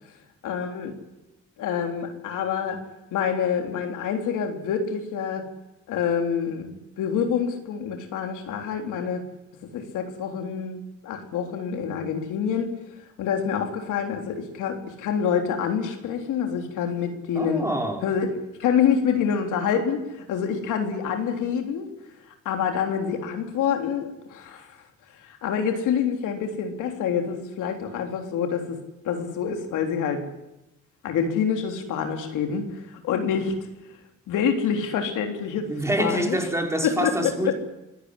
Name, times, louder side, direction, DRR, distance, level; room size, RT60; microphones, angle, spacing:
voice 1, 0.4-0.9 1.6-2.8 3.1-5.4 5.9-6.7 7.0-9.3 9.7-12.7 13.2-17.6 18.0-18.3 18.6-21.9 22.5-24.8 25.2-28.8 29.0-30.2 31.0-33.6 34.3-35.7 36.0-36.4 36.8-37.5, left 7 dB, 85° left, 3.5 m, -26 dB
voice 2, 17.3-18.0 35.7-37.5, right 1 dB, 10° right, 4.6 m, -26 dB
26.0 x 16.0 x 9.9 m
cardioid pair, 90°, 30 cm